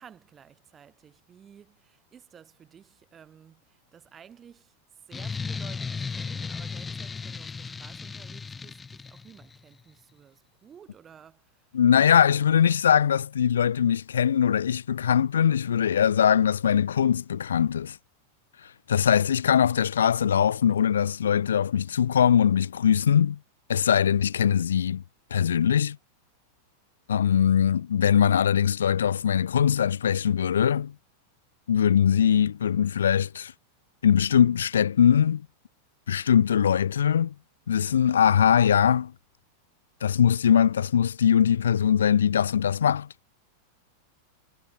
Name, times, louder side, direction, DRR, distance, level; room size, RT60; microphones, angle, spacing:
voice 1, 0.0-12.5, right 8 dB, 25° right, 5.3 m, -53 dB
sound 1, 5.1-9.6, left 5 dB, 15° left, 2.1 m, -35 dB
voice 2, 11.7-18.0 18.6-23.4 23.7-25.0 25.3-26.0 27.1-30.9 31.7-33.5 34.0-35.4 36.1-37.3 37.7-39.1 40.0-43.1, left 8 dB, 65° left, 0.4 m, -21 dB
figure-of-eight pair, 90°, 0 cm